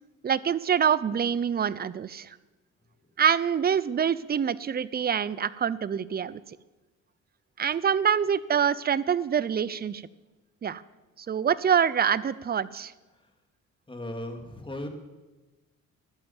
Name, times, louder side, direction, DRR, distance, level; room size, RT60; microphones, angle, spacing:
voice 1, 0.2-2.3 3.2-6.4 7.6-10.0 10.6-10.8 11.2-12.9, right 8 dB, 30° right, 18 dB, 0.6 m, -25 dB
voice 2, 13.9-14.9, left 1 dB, 15° left, 4 dB, 2.4 m, -37 dB
12.5 x 10.5 x 7.2 m, 1.1 s
cardioid pair, 90°, 30 cm